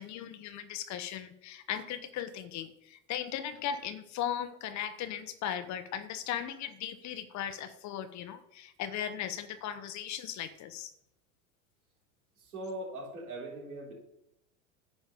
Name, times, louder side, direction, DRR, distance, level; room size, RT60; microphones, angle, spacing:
voice 1, 0.0-10.9, left 9 dB, 40° left, 12 dB, 0.9 m, -37 dB
voice 2, 12.4-13.9, right 1 dB, 80° right, -3 dB, 4.1 m, -40 dB
9.8 x 5.2 x 5.2 m, 0.77 s
hypercardioid pair, 90°, 43 cm